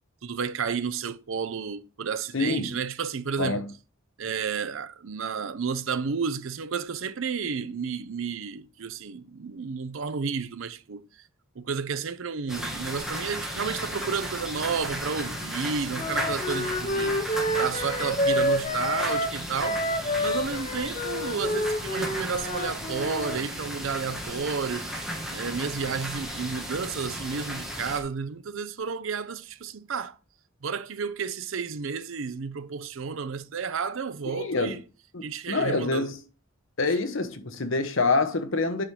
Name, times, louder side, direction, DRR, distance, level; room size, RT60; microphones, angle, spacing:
voice 1, 0.2-3.7 4.2-11.0 11.6-19.8 20.2-30.2 30.6-34.8 35.2-36.1, right 5 dB, 70° right, 0.6 m, -31 dB
voice 2, 2.3-2.7 3.4-3.7 34.3-34.8 35.1-36.2 36.8-38.8, left 3 dB, 65° left, 1.0 m, -26 dB
sound 1, 12.5-28.0, equal, ahead, 1.5 m, -35 dB
Wind instrument woodwind instrument, 15.9-23.4, left 1 dB, 35° left, 0.8 m, -28 dB
8.7 x 5.7 x 3.3 m
head